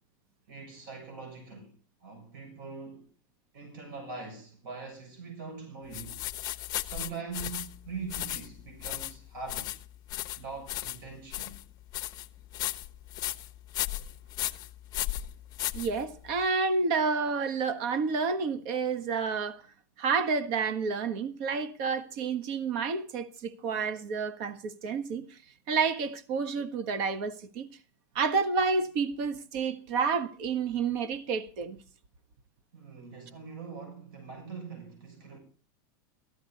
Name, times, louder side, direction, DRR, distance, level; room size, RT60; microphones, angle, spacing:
voice 1, 0.5-1.7 2.0-3.1 3.5-6.2 6.8-9.8 10.4-11.6 32.7-35.4, right 5 dB, 75° right, 7.1 m, -42 dB
sound 1, 5.9-16.4, left 14 dB, 35° left, 1.1 m, -36 dB
voice 2, 15.7-19.6 20.0-25.4 25.7-27.7 28.1-31.8, right 5 dB, 50° right, 1.4 m, -30 dB
16.0 x 13.5 x 4.1 m
supercardioid pair, 155°, 12 cm